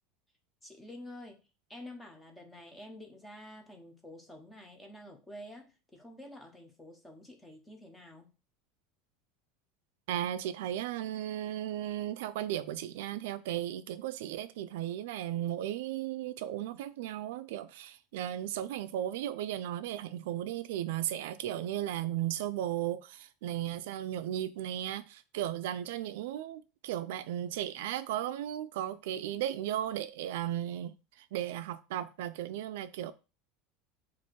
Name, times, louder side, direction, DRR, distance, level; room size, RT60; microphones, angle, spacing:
voice 1, 0.6-1.4 1.7-8.3, left 1 dB, 5° left, 0.6 m, -49 dB
voice 2, 10.1-33.1, right 12 dB, 75° right, 0.3 m, -35 dB
4.3 x 2.5 x 4.4 m
cardioid pair, 180°, 0 cm